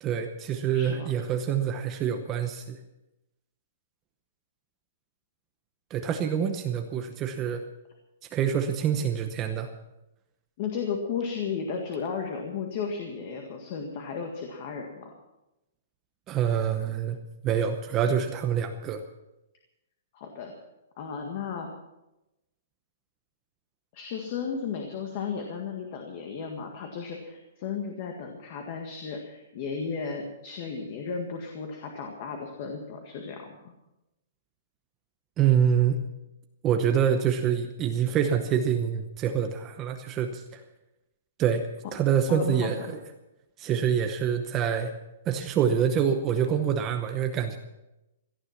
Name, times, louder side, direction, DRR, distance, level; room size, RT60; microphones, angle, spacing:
voice 1, 0.0-2.8 5.9-7.6 8.3-9.7 16.3-17.2 17.4-19.0 35.4-36.0 36.6-40.6 41.4-41.7 41.9-43.0 43.6-44.9 45.3-47.6, right 8 dB, 15° right, 6 dB, 0.8 m, -26 dB
voice 2, 0.7-1.1 10.6-15.2 20.1-20.5 21.0-21.7 23.9-33.6 41.8-41.9 42.3-42.7, left 6 dB, 35° left, 3 dB, 1.8 m, -34 dB
18.0 x 12.5 x 5.9 m, 0.94 s
hypercardioid pair, 175°, 0 cm